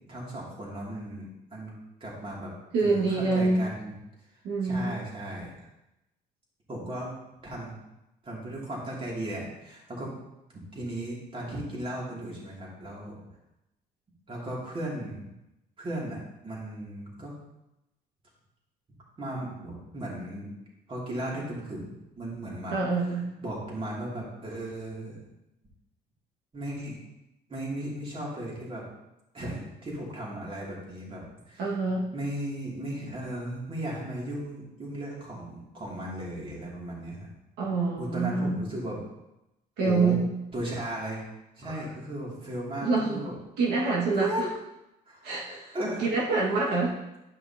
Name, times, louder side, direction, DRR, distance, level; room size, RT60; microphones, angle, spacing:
voice 1, 0.1-1.7 2.0-2.5 2.8-4.0 4.6-5.7 6.7-7.1 7.4-7.8 8.2-10.1 10.7-13.2 14.3-15.3 15.8-17.3 19.2-20.5 20.9-22.8 23.4-25.2 26.5-27.0 27.5-28.8 29.3-31.6 32.1-37.3 38.0-39.0 39.8-40.2 40.5-41.2 41.6-43.3 44.2-44.5 45.1-45.3 45.7-46.1, right 1 dB, 30° right, -4 dB, 2.9 m, -36 dB
voice 2, 2.7-3.6 4.4-5.0 22.7-23.2 31.6-32.1 37.6-38.6 39.8-40.2 41.7-41.8 42.8-43.2 43.6-44.5 45.2-46.9, right 3 dB, 85° right, -5 dB, 2.0 m, -26 dB
11.5 x 5.5 x 2.9 m, 0.92 s
cardioid pair, 110°, 17 cm